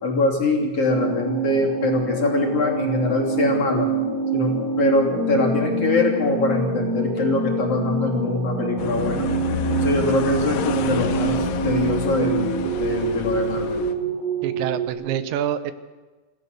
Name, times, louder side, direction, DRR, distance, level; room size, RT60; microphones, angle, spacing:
voice 1, 0.0-3.9 4.3-9.3 9.8-13.9, left 3 dB, 35° left, 0 dB, 3.3 m, -23 dB
sound 1, 0.8-14.9, right 4 dB, 45° right, 5.3 m, -26 dB
sound 2, 8.8-13.9, left 7 dB, 85° left, 3.8 m, -29 dB
voice 2, 14.4-15.7, right 10 dB, 75° right, 12 dB, 3.1 m, -26 dB
27.5 x 16.5 x 6.6 m, 1.2 s
omnidirectional pair, 5.5 m